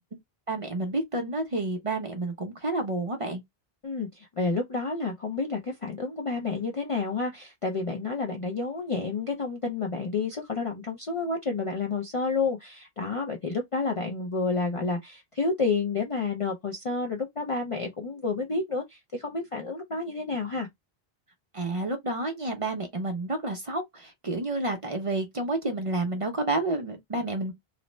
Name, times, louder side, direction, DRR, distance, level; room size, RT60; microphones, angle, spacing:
voice 1, 0.5-3.4 21.5-27.5, right 2 dB, 40° right, 0.6 m, -30 dB
voice 2, 3.8-20.7, left 4 dB, 50° left, 0.4 m, -30 dB
2.5 x 2.1 x 3.0 m
omnidirectional pair, 1.0 m